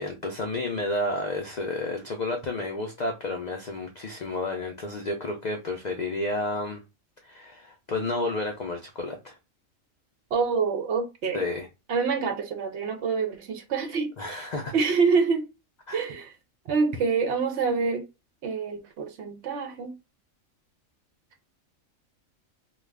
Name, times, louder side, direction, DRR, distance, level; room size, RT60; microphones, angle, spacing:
voice 1, 0.0-6.8 7.2-9.3 11.3-11.7 14.2-14.7 15.9-16.1, left 2 dB, 75° left, 0.4 m, -31 dB
voice 2, 10.3-11.4 11.9-14.4 14.7-15.5 15.9-16.3 16.7-18.0 18.4-19.9, right 5 dB, 65° right, 0.8 m, -26 dB
2.4 x 2.3 x 3.2 m
omnidirectional pair, 1.4 m